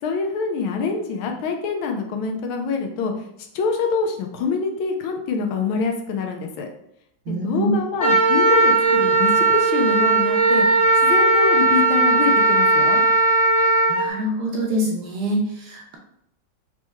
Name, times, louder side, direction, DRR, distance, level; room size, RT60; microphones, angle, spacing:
voice 1, 0.0-3.3 3.5-6.7 7.3-13.0, left 5 dB, 85° left, 3 dB, 1.5 m, -25 dB
voice 2, 7.3-7.7 13.9-16.0, equal, 65° right, 0 dB, 1.1 m, -25 dB
Wind instrument woodwind instrument, 8.0-14.0, right 3 dB, 40° left, 1.4 m, -17 dB
4.2 x 3.0 x 3.4 m, 0.74 s
omnidirectional pair, 2.2 m